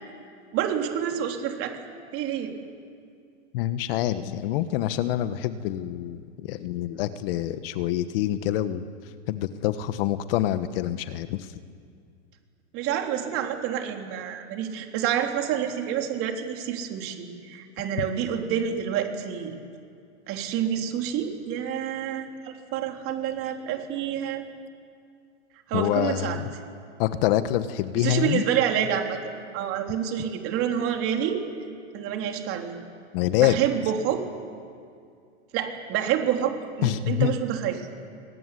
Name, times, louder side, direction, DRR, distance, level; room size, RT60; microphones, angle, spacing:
voice 1, 0.5-1.8 2.1-2.5 12.7-19.6 20.3-24.5 25.7-26.4 28.0-29.2 29.5-31.4 31.9-32.7 33.4-34.2 35.5-37.9, right 9 dB, 40° right, 3 dB, 3.9 m, -28 dB
voice 2, 3.5-8.8 9.3-11.5 25.7-26.5 27.0-28.4 33.1-33.6 36.8-37.3, left 13 dB, 50° left, 12 dB, 1.4 m, -26 dB
23.5 x 20.0 x 10.0 m, 2.3 s
hypercardioid pair, 135°, 35 cm